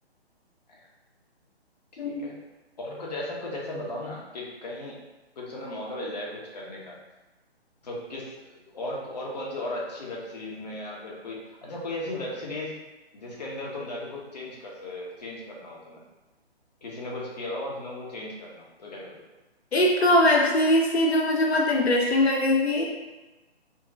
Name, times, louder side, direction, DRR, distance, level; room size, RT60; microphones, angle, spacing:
voice 1, 2.0-2.3 2.8-5.0 5.4-6.9 7.8-12.7 13.1-16.0 16.8-19.2, left 1 dB, 40° left, -3 dB, 0.6 m, -36 dB
voice 2, 19.7-22.9, left 1 dB, 75° left, -1 dB, 0.7 m, -21 dB
3.0 x 2.0 x 2.6 m, 1.1 s
figure-of-eight pair, 140°, 32 cm